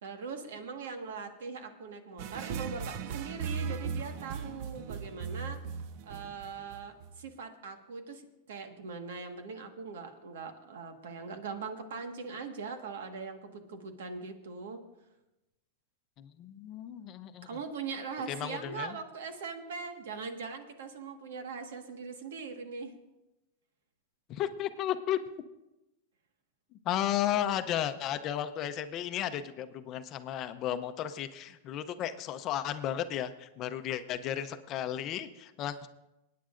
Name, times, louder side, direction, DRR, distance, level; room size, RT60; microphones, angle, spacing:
voice 1, 0.0-5.6 6.0-14.8 17.4-22.9, right 5 dB, 90° right, 6 dB, 1.5 m, -41 dB
sound 1, 2.2-7.2, right 6 dB, 50° right, 0.6 m, -38 dB
voice 2, 16.2-17.5 18.3-19.0 24.3-25.2 26.9-35.9, left 11 dB, 35° left, 10 dB, 0.6 m, -34 dB
27.5 x 9.4 x 2.5 m, 0.96 s
supercardioid pair, 150°, 0 cm